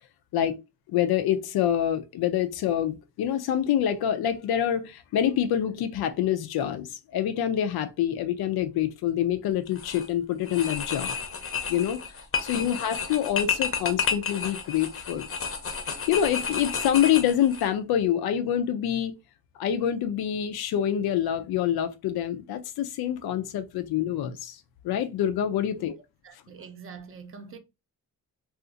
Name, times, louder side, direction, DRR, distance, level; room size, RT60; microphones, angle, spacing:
voice 1, 0.9-11.1 11.7-12.0 12.4-15.3 16.1-19.2 19.6-25.9, left 10 dB, 85° left, 0.5 m, -26 dB
sound 1, 9.7-10.1 10.5-17.7, left 6 dB, 35° left, 0.6 m, -31 dB
voice 2, 26.2-27.6, right 5 dB, 35° right, 0.5 m, -44 dB
2.4 x 2.4 x 3.8 m
cardioid pair, 140°, 37 cm